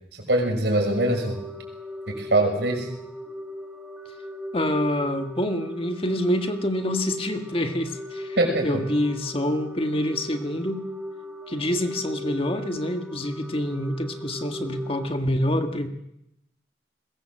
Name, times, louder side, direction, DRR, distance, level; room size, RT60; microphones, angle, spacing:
voice 1, 0.1-1.4 2.1-2.9 8.4-8.8, right 1 dB, 70° right, 3 dB, 6.3 m, -23 dB
sound 1, 0.9-15.1, equal, 5° right, 1.8 m, -38 dB
voice 2, 4.5-8.4 8.6-10.8 11.5-15.9, left 1 dB, 30° left, 6 dB, 1.6 m, -26 dB
22.0 x 19.5 x 7.6 m, 0.84 s
head